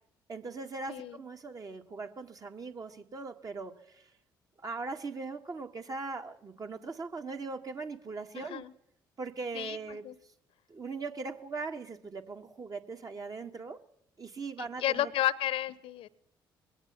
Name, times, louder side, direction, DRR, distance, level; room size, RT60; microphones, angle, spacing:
voice 1, 0.3-4.0 4.6-8.6 9.2-10.1 10.7-13.8 14.2-15.1, right 4 dB, 35° right, 5 dB, 1.8 m, -40 dB
voice 2, 0.9-1.2 8.3-8.7 9.5-10.2 14.8-16.1, left 13 dB, 55° left, 19 dB, 1.1 m, -32 dB
21.5 x 17.5 x 7.5 m, 0.69 s
figure-of-eight pair, 45°, 11 cm